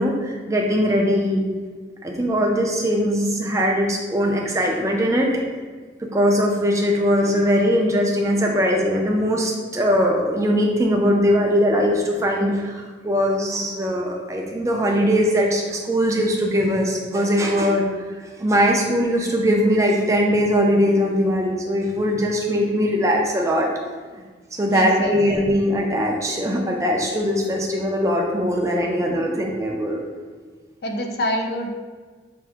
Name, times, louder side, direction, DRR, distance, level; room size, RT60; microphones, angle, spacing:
voice 1, 0.0-1.5 2.0-5.4 6.0-17.8 18.4-23.7 24.1-24.2 24.6-30.0, equal, 15° right, -1 dB, 0.4 m, -20 dB
voice 2, 24.7-25.2 30.8-31.7, left 1 dB, 60° left, 3 dB, 0.5 m, -25 dB
5.7 x 2.6 x 3.5 m, 1.4 s
head